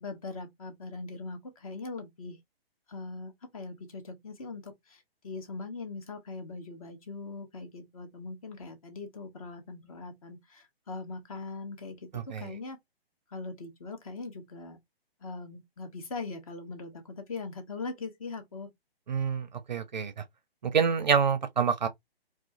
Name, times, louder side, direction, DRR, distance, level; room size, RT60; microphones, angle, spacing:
voice 1, 0.0-2.4 2.9-12.8 13.3-14.8 15.2-18.7, left 3 dB, 35° left, 0.7 m, -41 dB
voice 2, 12.1-12.5 19.1-20.2 20.7-21.9, right 6 dB, 45° right, 0.5 m, -27 dB
2.3 x 2.3 x 2.6 m
figure-of-eight pair, 130°, 31 cm